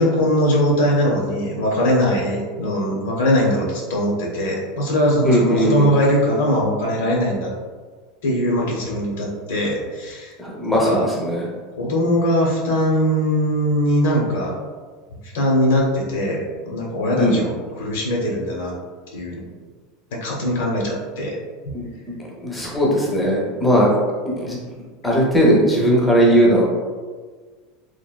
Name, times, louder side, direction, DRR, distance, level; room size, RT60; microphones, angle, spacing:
voice 1, 0.0-7.5 8.2-10.3 10.7-11.1 11.8-14.5 15.3-18.7 19.1-19.4 20.1-21.4 21.6-21.7, equal, 85° left, -2 dB, 0.8 m, -21 dB
voice 2, 5.2-5.9 10.4-11.5 17.2-17.4 21.7-23.9 24.4-24.6 25.0-26.6, equal, 5° left, -5 dB, 0.5 m, -18 dB
3.1 x 2.4 x 2.2 m, 1.5 s
supercardioid pair, 165°, 0 cm